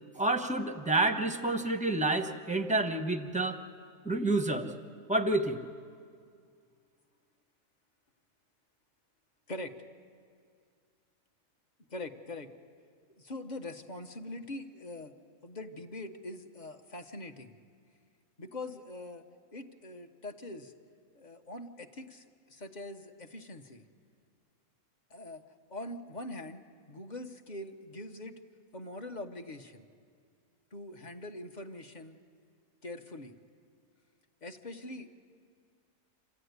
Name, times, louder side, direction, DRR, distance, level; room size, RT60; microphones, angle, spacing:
voice 1, 0.1-3.6 4.0-4.7 5.1-5.6, right 2 dB, 5° right, 7 dB, 0.7 m, -29 dB
voice 2, 11.9-12.5 13.2-15.1 15.4-17.5 18.4-19.2 19.5-20.7 21.1-23.8 25.1-25.4 25.7-26.6 26.9-28.4 28.7-29.8 30.7-32.2 32.8-33.3 34.4-35.1, left 2 dB, 35° left, 6 dB, 0.9 m, -43 dB
27.5 x 14.5 x 9.5 m, 2.2 s
omnidirectional pair, 1.7 m